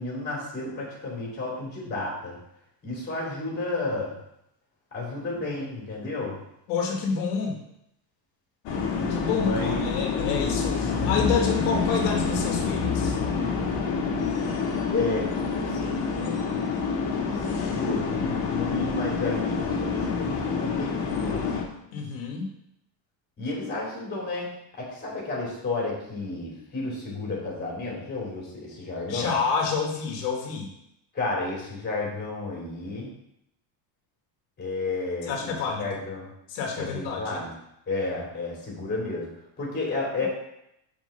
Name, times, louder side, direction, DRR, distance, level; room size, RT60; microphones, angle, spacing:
voice 1, 0.0-2.3 2.8-4.1 4.9-6.4 9.3-9.9 14.9-16.4 17.2-21.5 23.4-24.5 24.8-29.4 31.1-33.1 34.6-35.5 35.8-36.3 36.8-37.5 37.9-39.3 39.6-40.3, left 2 dB, 20° left, -3 dB, 3.1 m, -32 dB
voice 2, 6.7-7.6 9.1-13.2 21.9-22.5 29.1-30.7 35.3-35.9 36.5-37.4, left 5 dB, 80° left, 1 dB, 1.6 m, -28 dB
sound 1, 8.7-21.6, left 5 dB, 55° left, 1.7 m, -27 dB
5.8 x 4.7 x 6.4 m, 0.79 s
cardioid pair, 165°, 47 cm